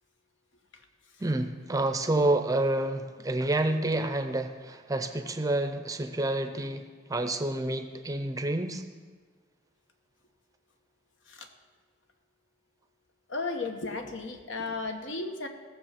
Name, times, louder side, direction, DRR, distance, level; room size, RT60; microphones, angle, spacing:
voice 1, 1.2-8.8, right 2 dB, 20° right, 8 dB, 0.6 m, -29 dB
voice 2, 13.3-15.5, left 3 dB, 70° left, 5 dB, 1.2 m, -34 dB
16.5 x 7.2 x 5.8 m, 1.4 s
head